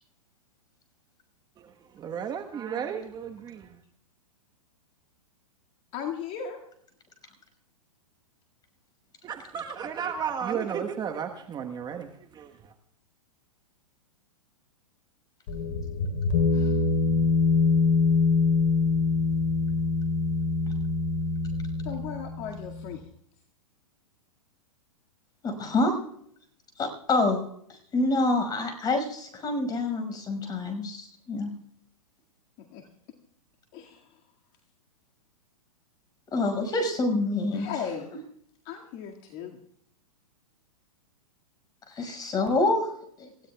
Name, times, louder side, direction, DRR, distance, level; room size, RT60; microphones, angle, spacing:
voice 1, 1.6-3.8 9.2-12.7, right 7 dB, 20° right, 1.3 m, -34 dB
voice 2, 5.9-6.6 16.5-16.8 21.8-23.1 32.6-32.9 33.7-34.1 37.5-38.1 38.7-39.6, left 7 dB, 40° left, 2.1 m, -37 dB
sound 1, 15.5-22.9, left 4 dB, 60° left, 4.1 m, -24 dB
voice 3, 25.4-25.9 26.8-31.5 36.3-37.7 41.9-42.9 43.2-43.3, left 2 dB, 20° left, 5.5 m, -27 dB
28.0 x 16.5 x 2.3 m
hypercardioid pair, 115°, 18 cm